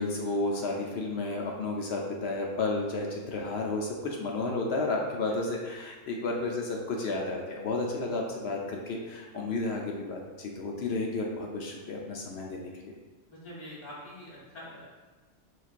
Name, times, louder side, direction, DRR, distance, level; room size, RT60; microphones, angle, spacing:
voice 1, 0.0-12.9, left 2 dB, 65° left, 0 dB, 0.7 m, -32 dB
voice 2, 13.3-14.9, left 1 dB, 30° left, -7 dB, 0.7 m, -45 dB
4.7 x 3.2 x 2.4 m, 1.3 s
omnidirectional pair, 1.3 m